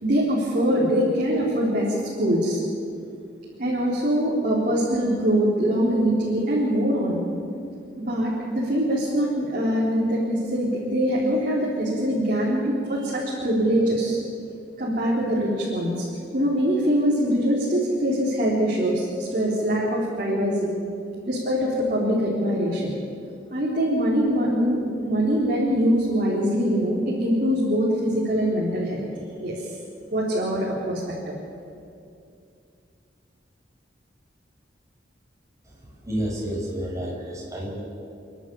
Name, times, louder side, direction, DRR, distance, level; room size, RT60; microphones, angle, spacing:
voice 1, 0.0-2.6 3.6-7.2 8.1-14.2 14.8-16.1 16.3-20.8 21.3-23.0 23.5-29.0 29.4-29.7 30.1-31.3, equal, 50° right, -6 dB, 3.8 m, -23 dB
voice 2, 35.6-37.8, equal, 20° right, -4 dB, 6.0 m, -30 dB
29.0 x 11.0 x 8.8 m, 2.5 s
head